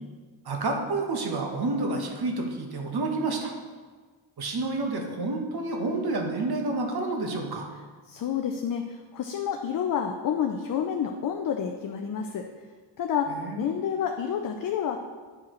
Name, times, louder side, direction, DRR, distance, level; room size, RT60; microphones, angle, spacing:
voice 1, 0.4-3.5 4.4-7.7 13.3-13.6, right 2 dB, 55° right, 2 dB, 1.1 m, -29 dB
voice 2, 8.1-12.5 13.0-15.0, left 8 dB, 45° left, 4 dB, 0.4 m, -29 dB
8.7 x 4.7 x 3.1 m, 1.5 s
cardioid pair, 120°, 47 cm